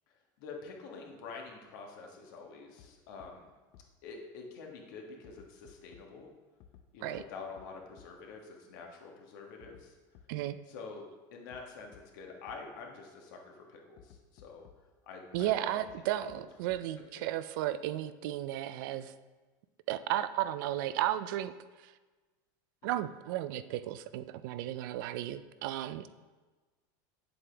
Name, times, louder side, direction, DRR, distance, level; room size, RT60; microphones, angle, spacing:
voice 1, 0.4-3.5 4.0-6.3 6.9-10.0 10.7-14.6 15.0-15.9 16.3-16.4 22.8-23.1, left 4 dB, 75° left, 1 dB, 1.5 m, -47 dB
sound 1, 2.8-2.9 3.2-3.3 3.7-3.8 5.2-6.0 6.6-6.8 7.1-7.2 7.6-7.7 8.0-8.1 9.6-9.8 10.1-10.2 11.5-11.6 11.9-12.0 12.5-12.6 14.0-14.7 15.3-15.6 15.9-16.0 16.3-16.4 16.7-16.8, left 9 dB, 50° left, 0.6 m, -56 dB
voice 2, 15.3-19.1 19.9-21.5 21.8-21.9 22.8-26.1, right 13 dB, 75° right, 14 dB, 0.4 m, -34 dB
7.8 x 7.7 x 3.4 m, 1.3 s
supercardioid pair, 150°, 11 cm